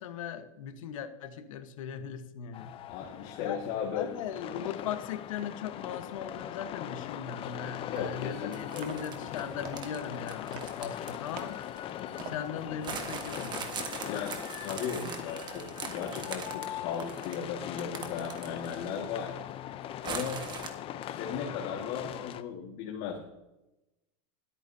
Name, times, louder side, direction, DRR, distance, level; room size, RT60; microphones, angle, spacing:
voice 1, 0.0-2.7 3.4-3.6 3.9-11.5 12.2-13.8, left 8 dB, 80° left, 9 dB, 1.2 m, -39 dB
sound 1, 2.5-22.4, left 11 dB, 35° left, 0.6 m, -40 dB
voice 2, 2.8-4.1 7.9-9.0 12.0-12.3 14.1-14.3 14.6-19.4 20.0-20.4 21.0-23.2, left 7 dB, 55° left, 0 dB, 1.8 m, -36 dB
sound 2, 7.6-13.7, right 7 dB, 45° right, 1.6 m, -50 dB
sound 3, 8.5-12.3 12.8-19.0 19.3-19.4 20.0-20.7, right 5 dB, 25° right, 1.5 m, -41 dB
24.5 x 9.0 x 2.8 m, 0.97 s
supercardioid pair, 130°, 17 cm